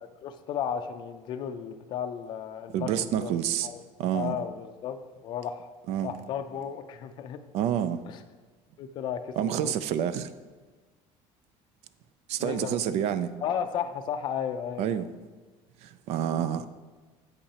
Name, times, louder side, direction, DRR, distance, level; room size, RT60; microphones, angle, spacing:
voice 1, 0.2-3.8 4.1-5.7 6.0-7.4 8.1-8.2 8.8-9.7 12.4-12.8 13.4-15.1, left 8 dB, 40° left, 0.4 m, -34 dB
voice 2, 2.7-3.7 4.0-4.4 5.9-6.1 7.5-8.0 9.4-10.3 12.3-13.3 14.8-15.1 15.8-16.7, right 10 dB, 60° right, 0.4 m, -28 dB
8.5 x 8.1 x 2.8 m
cardioid pair, 170°, 12 cm